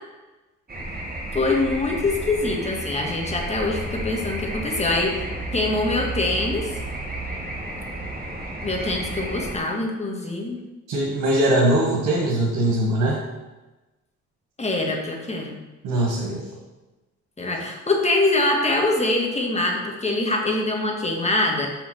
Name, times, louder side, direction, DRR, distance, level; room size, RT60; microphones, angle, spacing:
sound 1, 0.7-9.6, right 1 dB, 30° right, 1.9 m, -32 dB
voice 1, 1.3-6.7 8.6-10.6 14.6-15.6 17.4-21.7, left 2 dB, 20° left, 0 dB, 1.8 m, -24 dB
voice 2, 10.9-13.2 15.8-16.4, right 1 dB, 85° right, -3 dB, 1.6 m, -21 dB
6.1 x 5.6 x 6.2 m, 1.1 s
cardioid pair, 90°, 30 cm